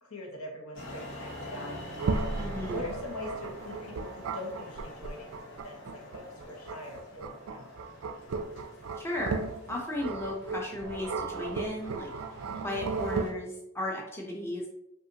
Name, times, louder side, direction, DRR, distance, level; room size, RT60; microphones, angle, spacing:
voice 1, 0.0-2.0 2.7-5.3 5.6-7.7, left 1 dB, 80° left, 0 dB, 1.1 m, -43 dB
sound 1, 0.7-13.3, left 1 dB, 60° left, 1.3 m, -46 dB
sound 2, 2.0-13.3, right 4 dB, 65° right, 0.4 m, -35 dB
voice 2, 2.4-2.8 9.0-12.1 12.6-14.7, left 1 dB, 10° left, -2 dB, 0.7 m, -35 dB
5.4 x 2.5 x 2.8 m, 0.86 s
head